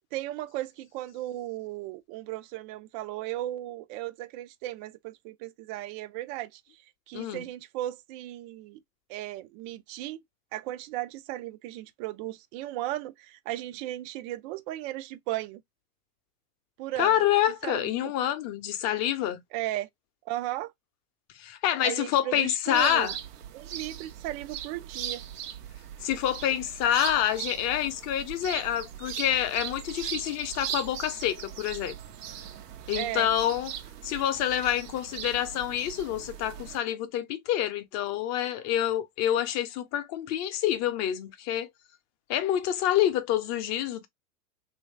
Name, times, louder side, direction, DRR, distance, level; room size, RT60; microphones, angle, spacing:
voice 1, 0.1-8.8 9.1-10.2 10.5-15.6 16.8-17.2 17.6-18.1 19.5-19.9 20.3-20.7 21.8-23.1 23.5-25.2 32.9-33.3, right 15 dB, 35° right, 0.4 m, -36 dB
voice 2, 7.1-7.4 17.0-19.4 21.4-23.1 26.0-32.0 32.9-33.7 34.0-41.7 42.3-44.1, left 11 dB, 35° left, 0.8 m, -27 dB
sound 1, 22.7-36.8, right 10 dB, 80° right, 0.9 m, -39 dB
3.0 x 2.7 x 3.1 m
hypercardioid pair, 115°, 46 cm